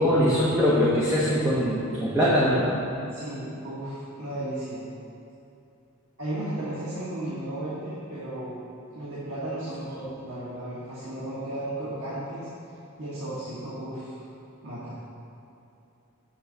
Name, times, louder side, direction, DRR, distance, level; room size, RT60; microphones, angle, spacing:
voice 1, 0.0-2.7, equal, 10° right, -9 dB, 1.0 m, -22 dB
voice 2, 3.1-4.8 6.2-8.6 8.9-12.5 13.0-14.2 14.6-14.9, right 1 dB, 75° right, -9 dB, 1.6 m, -34 dB
7.9 x 4.0 x 6.8 m, 2.7 s
head